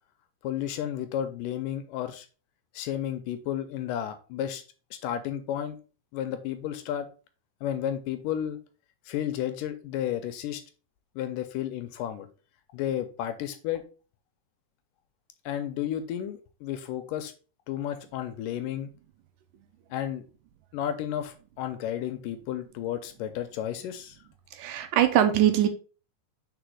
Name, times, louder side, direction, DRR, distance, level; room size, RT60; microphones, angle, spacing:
voice 1, 0.4-2.3 2.7-4.6 5.0-5.8 6.1-7.1 7.6-8.6 9.1-10.6 11.2-12.3 12.7-13.8 15.5-17.3 17.7-18.9 19.9-20.2 20.7-24.2, left 10 dB, 80° left, 9 dB, 2.1 m, -32 dB
voice 2, 24.5-25.7, right 11 dB, 80° right, 7 dB, 2.1 m, -22 dB
5.0 x 4.4 x 4.7 m, 0.36 s
omnidirectional pair, 4.0 m